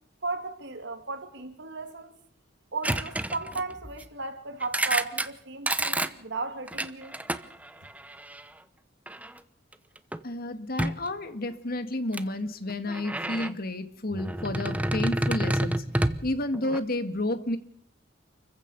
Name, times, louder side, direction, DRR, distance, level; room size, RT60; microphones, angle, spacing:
voice 1, 0.2-2.2 2.7-7.1 7.8-7.9, right 3 dB, 65° right, 2.9 m, -35 dB
sound 1, 2.8-4.0 4.6-5.3 5.7-6.1 6.7-8.4 9.1-9.4 9.7-10.2 10.8-11.1 12.1-12.2 12.7-13.5 14.1-16.8, right 1 dB, 10° right, 0.9 m, -29 dB
voice 2, 10.2-15.8 16.2-17.6, left 1 dB, 50° left, 1.8 m, -31 dB
28.0 x 15.5 x 6.9 m
head